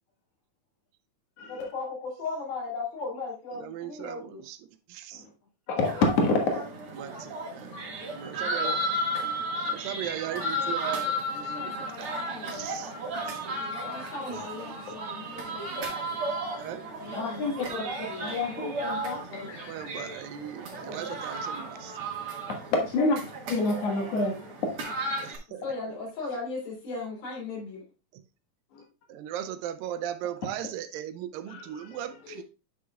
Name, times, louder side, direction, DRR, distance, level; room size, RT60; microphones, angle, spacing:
voice 1, 1.5-4.4 10.3-10.7 11.5-12.7 13.8-15.7 17.0-18.6 19.1-19.9 20.8-21.0 23.0-23.2 25.6-27.8 32.2-32.4, left 4 dB, 85° left, -4 dB, 4.6 m, -38 dB
voice 2, 3.5-4.6 4.9-5.2 6.9-7.8 8.1-8.8 9.7-12.1 12.4-12.9 13.3-13.4 16.6-16.8 19.4-22.0 25.2-26.0 28.1-28.2 29.1-32.4, right 11 dB, 80° right, 10 dB, 2.3 m, -38 dB
voice 3, 5.7-6.5 7.7-7.8 16.4-16.5 17.1-19.2 21.9-23.2 23.5-24.8 28.7-28.8 31.5-32.0, left 3 dB, 55° left, 2 dB, 2.2 m, -28 dB
sound 1, 5.8-25.4, right 1 dB, 45° right, 2.0 m, -34 dB
9.2 x 6.2 x 2.3 m, 0.30 s
omnidirectional pair, 4.1 m